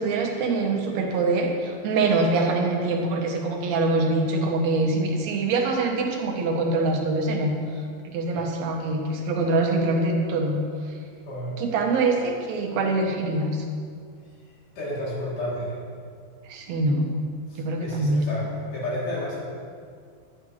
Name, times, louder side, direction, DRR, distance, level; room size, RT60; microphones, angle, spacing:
voice 1, 0.0-7.6 8.0-10.6 11.6-13.6 16.5-17.1 17.6-18.3, right 2 dB, 65° right, 2 dB, 2.1 m, -24 dB
voice 2, 11.3-11.6 14.8-15.8 17.5-19.4, left 1 dB, 75° left, -7 dB, 4.5 m, -31 dB
11.0 x 10.5 x 3.2 m, 2.1 s
omnidirectional pair, 3.7 m